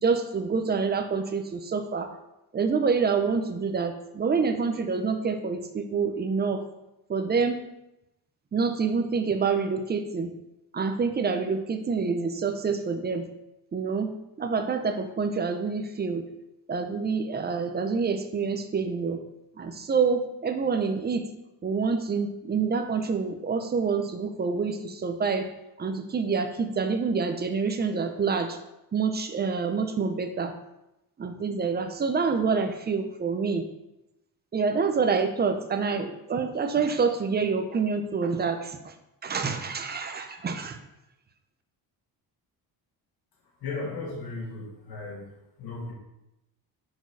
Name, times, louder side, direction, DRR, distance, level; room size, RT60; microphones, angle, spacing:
voice 1, 0.0-2.1 2.5-6.6 7.1-7.6 8.5-10.3 10.7-13.3 13.7-14.1 14.4-16.3 16.7-19.2 19.6-21.3 21.6-25.5 25.8-28.6 28.9-30.5 31.2-33.6 34.5-38.9 39.2-40.8, right 5 dB, 25° right, 6 dB, 0.6 m, -27 dB
voice 2, 43.6-45.3 45.6-45.9, left 3 dB, 55° left, -3 dB, 2.0 m, -35 dB
6.2 x 4.6 x 4.6 m, 0.91 s
cardioid pair, 125°, 43 cm